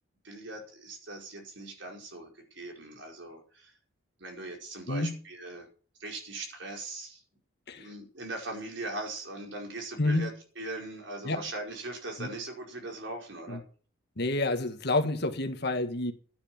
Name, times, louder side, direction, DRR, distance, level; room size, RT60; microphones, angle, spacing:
voice 1, 0.2-3.7 4.2-5.7 6.0-7.2 7.8-10.3 10.6-13.6, right 2 dB, 60° right, 5.0 m, -40 dB
voice 2, 10.0-10.3 11.2-11.4 12.2-12.3 13.5-13.6 14.2-16.1, left 2 dB, 55° left, 1.7 m, -29 dB
12.5 x 9.7 x 7.3 m
head